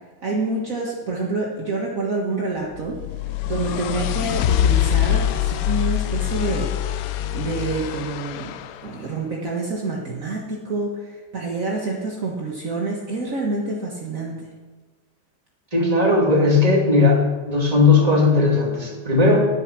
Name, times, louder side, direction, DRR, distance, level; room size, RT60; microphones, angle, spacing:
voice 1, 0.2-3.0 3.5-7.0 7.3-8.5 8.8-14.4, right 3 dB, 50° right, -3 dB, 1.9 m, -27 dB
sound 1, 2.8-8.9, left 12 dB, 70° left, 0.9 m, -24 dB
voice 2, 15.7-19.4, left 3 dB, 20° right, -1 dB, 2.5 m, -17 dB
11.5 x 9.6 x 6.0 m, 1.3 s
omnidirectional pair, 1.9 m